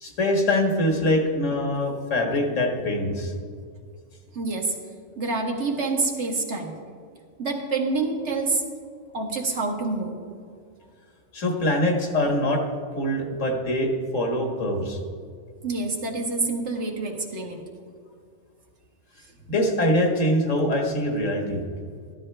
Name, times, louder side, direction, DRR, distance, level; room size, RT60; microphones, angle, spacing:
voice 1, 0.0-3.3 11.3-12.6 13.0-15.0 19.5-21.6, left 1 dB, 80° left, 2 dB, 1.9 m, -23 dB
voice 2, 4.3-4.7 5.2-6.7 7.4-8.6 9.1-10.1 15.6-17.6, right 3 dB, 65° right, 1 dB, 1.7 m, -27 dB
13.0 x 12.5 x 3.3 m, 2.2 s
omnidirectional pair, 1.3 m